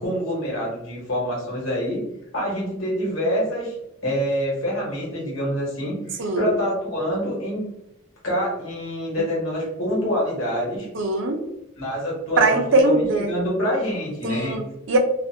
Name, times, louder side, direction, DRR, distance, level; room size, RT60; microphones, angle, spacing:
voice 1, 0.0-2.0 2.3-3.8 4.0-7.6 8.2-10.9 11.8-14.6, equal, 75° left, -4 dB, 1.0 m, -26 dB
voice 2, 6.2-6.5 10.9-11.4 12.4-13.3 14.2-15.0, right 2 dB, 60° right, 4 dB, 0.4 m, -21 dB
2.4 x 2.1 x 2.7 m, 0.84 s
head